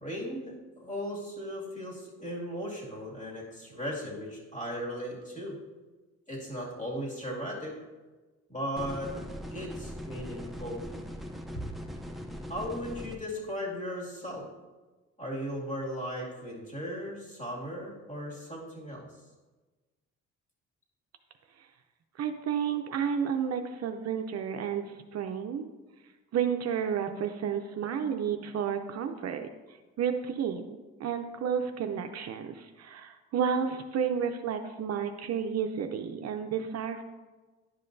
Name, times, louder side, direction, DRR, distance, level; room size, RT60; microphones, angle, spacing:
voice 1, 0.0-5.6 6.3-7.8 8.5-9.1 9.5-10.8 11.5-11.6 12.5-14.5 15.2-19.1, equal, 25° left, -4 dB, 2.3 m, -37 dB
sound 1, 8.8-13.2, equal, ahead, 0.6 m, -40 dB
voice 2, 22.2-25.7 26.3-29.5 30.0-37.0, right 7 dB, 55° right, 6 dB, 0.6 m, -31 dB
10.5 x 5.6 x 2.6 m, 1.2 s
cardioid pair, 90°, 30 cm